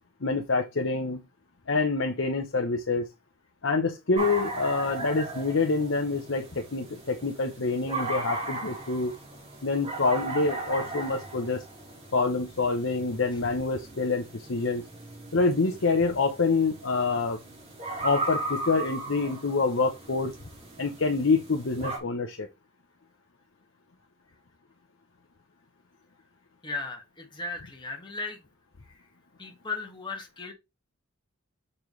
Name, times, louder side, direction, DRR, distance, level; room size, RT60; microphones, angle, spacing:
voice 1, 0.2-1.2 1.7-3.1 3.6-9.1 9.6-11.6 12.1-14.8 15.3-17.4 18.0-20.3 20.8-22.5, left 3 dB, 60° left, 0.8 m, -26 dB
sound 1, 4.1-22.0, right 2 dB, 30° right, 2.4 m, -37 dB
voice 2, 26.6-28.4 29.4-30.5, left 3 dB, 20° left, 1.7 m, -36 dB
6.8 x 5.5 x 3.1 m
head